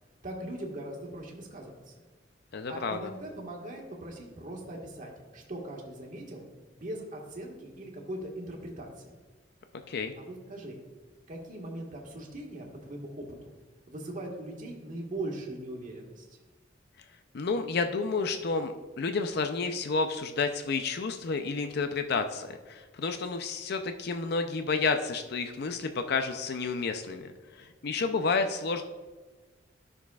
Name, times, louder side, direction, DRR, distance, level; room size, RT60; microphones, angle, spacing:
voice 1, 0.2-1.9 2.7-6.4 6.7-9.1 10.3-10.8 11.3-13.5 13.9-16.4, right 1 dB, 45° right, 0 dB, 1.5 m, -40 dB
voice 2, 2.5-3.1 9.9-10.1 17.3-28.8, left 4 dB, 60° left, 7 dB, 0.5 m, -30 dB
12.0 x 6.1 x 2.3 m, 1.3 s
head